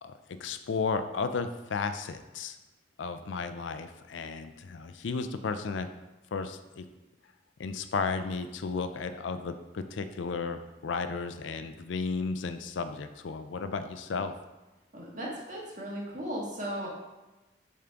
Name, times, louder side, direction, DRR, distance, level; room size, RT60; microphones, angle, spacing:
voice 1, 0.0-2.6 3.0-5.9 6.3-6.9 7.6-14.3, left 4 dB, 80° left, 10 dB, 0.4 m, -34 dB
voice 2, 14.9-16.9, equal, 40° right, -3 dB, 1.6 m, -36 dB
6.9 x 3.8 x 4.5 m, 1.1 s
head